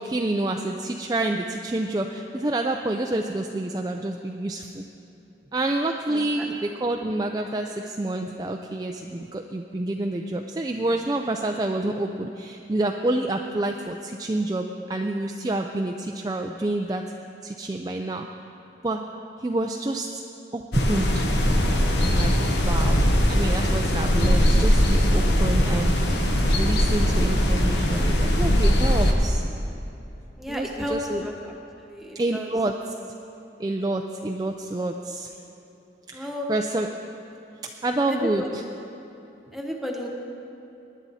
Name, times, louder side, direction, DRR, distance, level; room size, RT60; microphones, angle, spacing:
voice 1, 0.0-4.8 5.5-17.0 17.4-18.3 18.8-19.0 19.4-20.2 20.5-21.3 22.0-23.0 23.3-25.9 26.2-26.3 26.6-29.4 30.5-31.3 32.1-32.7 33.6-35.3 36.1-36.9 37.8-38.6, right 2 dB, 20° right, 3 dB, 0.4 m, -28 dB
voice 2, 6.1-6.5 30.4-31.3 31.8-32.5 36.1-36.5 38.1-38.5 39.5-40.1, equal, ahead, -1 dB, 1.2 m, -33 dB
sound 1, 20.7-29.1, equal, 70° left, 1.3 m, -20 dB
19.0 x 10.5 x 4.2 m, 2.9 s
head